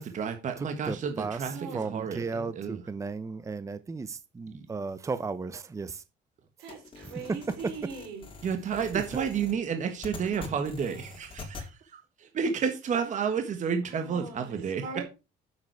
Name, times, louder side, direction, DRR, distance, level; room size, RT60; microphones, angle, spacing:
voice 1, 0.0-1.5 1.9-2.8 4.5-4.6 8.4-11.7 12.3-14.8, right 6 dB, 45° right, 1.5 m, -30 dB
voice 2, 0.6-6.0 7.0-7.1 8.9-9.0, right 4 dB, 20° right, 0.7 m, -35 dB
voice 3, 1.5-2.0 6.6-8.3 13.9-15.0, right 5 dB, 85° right, 4.7 m, -41 dB
sound 1, 6.7-11.7, left 4 dB, 30° left, 3.7 m, -45 dB
9.1 x 7.5 x 4.7 m
cardioid pair, 110°, 17 cm